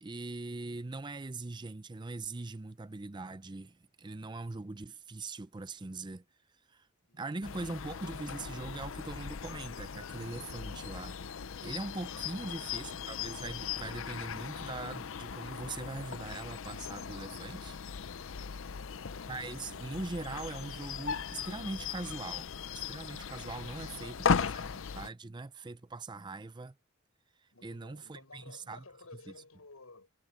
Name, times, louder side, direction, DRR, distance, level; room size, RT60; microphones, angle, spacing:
voice 1, 0.0-6.2 6.7-6.9 7.1-11.2 11.6-17.8 19.3-22.5 22.7-26.8 27.6-28.8, right 3 dB, 20° right, 0.5 m, -41 dB
voice 2, 7.1-7.4 23.7-24.6 27.5-30.1, left 3 dB, 85° left, 6.4 m, -55 dB
sound 1, 7.4-25.1, left 6 dB, 60° left, 0.6 m, -38 dB
head